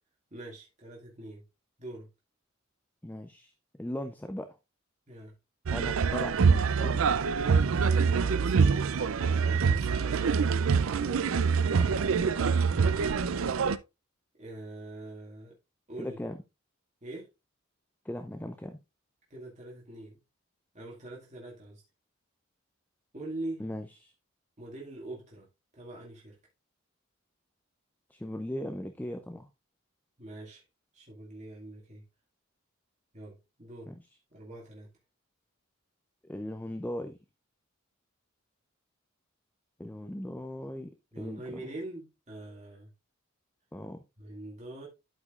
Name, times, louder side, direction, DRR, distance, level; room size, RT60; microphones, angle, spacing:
voice 1, 0.3-1.4 1.8-2.1 5.1-5.3 7.9-8.8 9.2-10.2 12.8-13.1 14.4-15.5 15.9-16.2 17.0-17.3 19.3-20.2 20.7-21.8 23.1-23.6 24.6-25.5 25.7-26.4 30.2-30.6 30.9-32.0 33.1-33.9 34.3-34.9 41.1-42.9 44.2-44.9, right 2 dB, 35° right, 2.1 m, -43 dB
voice 2, 3.0-3.5 3.8-4.6 5.7-7.1 11.8-12.1 16.0-16.4 18.0-18.8 23.6-24.1 28.1-29.5 33.9-34.0 36.2-37.2 39.8-41.6 43.7-44.0, left 1 dB, 10° left, 0.5 m, -38 dB
sound 1, 5.7-13.8, right 5 dB, 80° right, 0.5 m, -25 dB
12.0 x 5.1 x 2.5 m
head